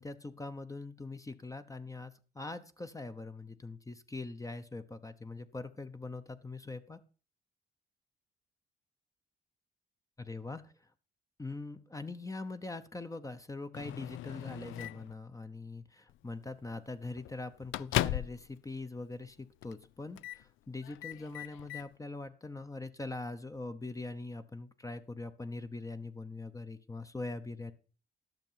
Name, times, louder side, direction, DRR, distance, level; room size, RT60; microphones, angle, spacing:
voice 1, 0.0-7.0 10.2-10.7 11.4-27.7, left 3 dB, 15° left, 9 dB, 0.9 m, -42 dB
Microwave oven, 13.7-15.1 16.1-16.3 16.7-16.8 17.2-18.5 18.8-18.9 19.6-19.9 20.1-20.4 20.8-21.9, left 15 dB, 85° left, 0.4 m, -37 dB
12.0 x 6.7 x 5.7 m, 0.37 s
cardioid pair, 90°, 20 cm